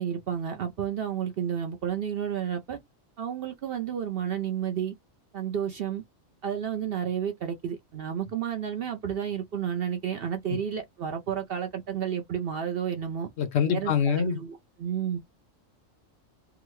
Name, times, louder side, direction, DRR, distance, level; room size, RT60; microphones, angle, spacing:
voice 1, 0.0-2.8 3.2-4.9 5.3-6.0 6.4-13.3 13.6-15.2, right 8 dB, 60° right, 0.6 m, -31 dB
voice 2, 13.4-14.4, left 7 dB, 65° left, 0.7 m, -25 dB
3.6 x 2.1 x 3.0 m
omnidirectional pair, 1.4 m